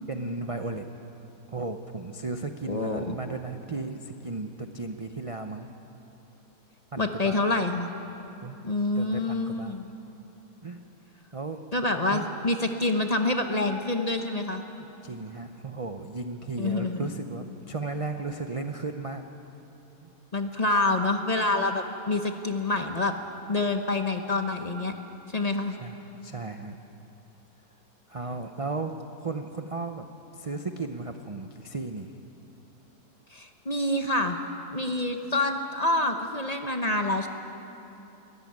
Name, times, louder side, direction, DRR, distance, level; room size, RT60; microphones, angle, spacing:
voice 1, 0.1-0.9 1.5-5.7 6.9-7.4 8.4-8.6 8.9-9.8 10.6-10.8 11.3-11.6 12.1-12.3 15.0-19.2 20.0-20.1 25.8-26.8 28.1-30.0 30.3-32.1, right 3 dB, 40° right, 6 dB, 0.5 m, -35 dB
voice 2, 2.7-3.2 7.0-7.9 8.6-9.9 11.7-14.6 16.6-17.1 20.3-23.1 23.5-24.9 25.3-25.8 33.3-34.4 34.7-37.3, left 2 dB, 30° left, 5 dB, 0.9 m, -27 dB
22.0 x 14.0 x 9.5 m, 3.0 s
omnidirectional pair, 1.7 m